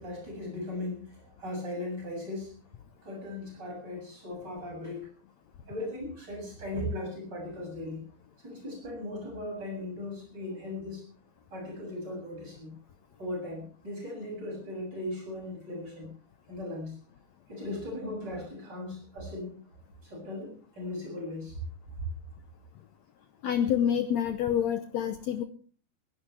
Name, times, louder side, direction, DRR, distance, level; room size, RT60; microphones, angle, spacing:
voice 1, 0.0-2.6 3.0-5.1 5.7-8.0 8.4-11.1 11.5-12.8 13.2-16.1 16.5-17.0 17.5-19.6 20.0-21.6, left 1 dB, 25° right, 1 dB, 7.9 m, -38 dB
voice 2, 23.4-25.4, left 9 dB, 90° left, 8 dB, 1.5 m, -27 dB
21.0 x 16.5 x 3.4 m, 0.42 s
omnidirectional pair, 4.5 m